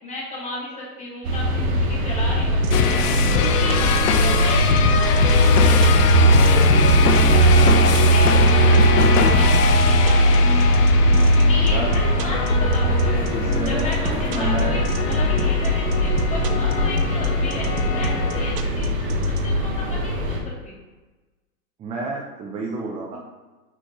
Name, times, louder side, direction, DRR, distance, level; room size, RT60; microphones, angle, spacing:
voice 1, 0.0-3.0 3.3-10.7 11.3-13.2 13.6-20.8 23.1-23.2, left 2 dB, 15° left, -3 dB, 2.0 m, -34 dB
sound 1, 1.2-20.4, right 1 dB, 60° right, 1.8 m, -19 dB
sound 2, 2.6-19.4, right 8 dB, 90° right, 0.9 m, -31 dB
sound 3, 2.7-18.6, left 7 dB, 75° left, 0.8 m, -23 dB
voice 2, 13.3-14.8 21.8-23.2, right 3 dB, 15° right, -1 dB, 0.5 m, -30 dB
10.0 x 4.2 x 3.0 m, 1.2 s
hypercardioid pair, 130°, 46 cm